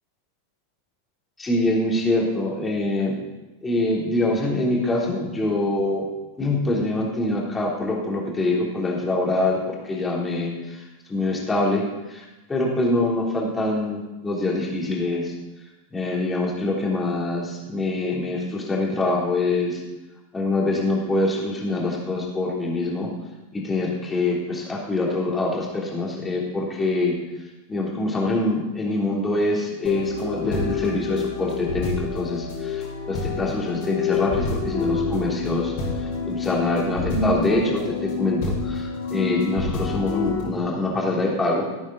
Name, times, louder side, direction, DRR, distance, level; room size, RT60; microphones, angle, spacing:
voice 1, 1.4-3.2 3.6-6.1 6.4-10.8 11.1-12.2 12.5-15.3 15.9-19.8 20.3-23.1 23.5-27.2 27.7-35.7 36.0-41.7, left 2 dB, 15° left, -3 dB, 3.3 m, -24 dB
sound 1, 29.8-40.4, left 4 dB, 50° left, 4.2 m, -27 dB
17.0 x 8.9 x 4.0 m, 1.1 s
figure-of-eight pair, 90°, 0 cm